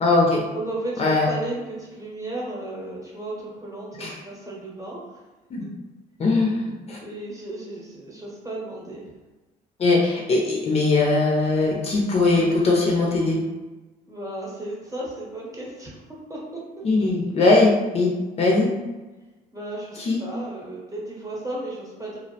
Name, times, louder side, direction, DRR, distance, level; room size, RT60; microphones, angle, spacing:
voice 1, 0.0-0.4 1.0-1.3 4.0-4.1 5.5-5.7 6.2-7.0 9.8-13.4 16.8-18.1 18.4-18.7 20.0-20.2, left 3 dB, 35° left, -2 dB, 0.5 m, -20 dB
voice 2, 0.5-5.3 7.0-9.1 14.1-16.9 19.5-22.2, right 2 dB, 20° right, -4 dB, 0.8 m, -34 dB
2.4 x 2.0 x 2.7 m, 1.2 s
cardioid pair, 110°, 17 cm